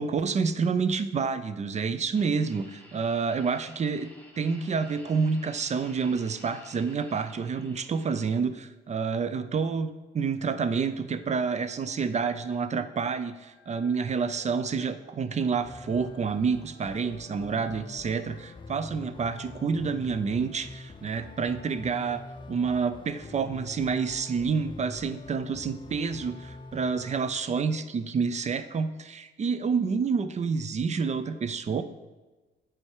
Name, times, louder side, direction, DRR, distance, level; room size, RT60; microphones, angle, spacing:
voice 1, 0.0-4.1 4.4-31.8, right 5 dB, 35° right, 11 dB, 0.5 m, -28 dB
sound 1, 2.1-8.3, equal, 5° left, 1.4 m, -52 dB
Wind instrument woodwind instrument, 11.6-17.8, left 4 dB, 75° right, 2.2 m, -62 dB
sound 2, 15.6-27.2, left 2 dB, 25° left, 0.6 m, -44 dB
8.8 x 3.5 x 4.7 m, 1.2 s
cardioid pair, 90°, 20 cm